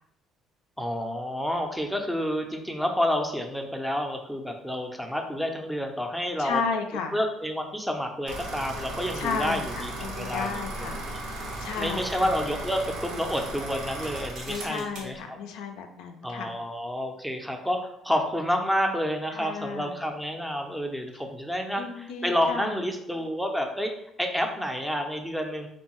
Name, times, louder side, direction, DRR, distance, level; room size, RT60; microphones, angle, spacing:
voice 1, 0.8-6.6 7.1-10.9 11.8-15.4 16.2-23.9 24.2-25.7, equal, ahead, 3 dB, 0.4 m, -29 dB
voice 2, 6.4-7.2 9.1-11.0 11.6-12.3 14.5-16.5 19.3-20.0 21.8-22.8, left 5 dB, 85° left, 5 dB, 0.3 m, -33 dB
sound 1, 8.3-15.2, right 2 dB, 75° right, 0.7 m, -36 dB
2.6 x 2.2 x 3.0 m, 0.76 s
cardioid pair, 90°, 0 cm